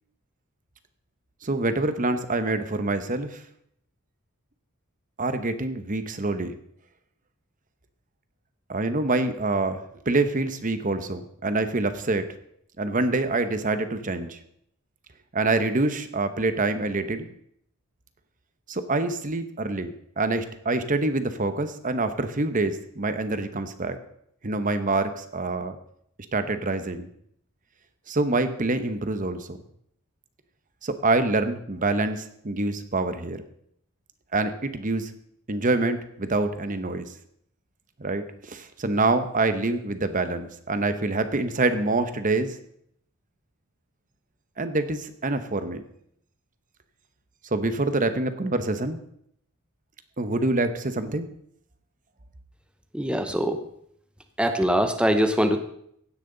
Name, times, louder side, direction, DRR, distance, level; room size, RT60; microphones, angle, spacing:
voice 1, 1.4-3.4 5.2-6.6 8.7-12.3 12.8-14.4 15.3-17.3 18.7-24.0 24.4-25.8 26.3-27.1 28.1-29.6 30.8-33.4 34.3-35.1 35.5-37.1 38.0-42.6 44.6-45.8 47.5-49.0 50.2-51.3, right 2 dB, 35° right, 10 dB, 1.0 m, -26 dB
voice 2, 52.9-53.6 54.4-55.6, equal, 5° right, 7 dB, 0.8 m, -22 dB
16.0 x 10.5 x 4.0 m, 0.70 s
head